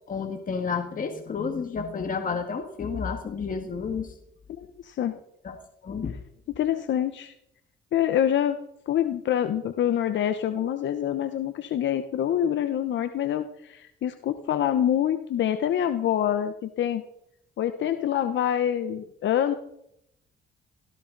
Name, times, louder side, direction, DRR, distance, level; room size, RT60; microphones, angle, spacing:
voice 1, 0.1-4.1 5.4-5.6 5.8-6.2, left 5 dB, 45° left, 5 dB, 1.9 m, -30 dB
voice 2, 4.5-5.2 6.6-7.3 7.9-8.6 8.9-17.0 17.6-19.5, left 10 dB, 70° left, 9 dB, 1.0 m, -26 dB
18.5 x 16.0 x 4.0 m, 0.77 s
cardioid pair, 90°, 20 cm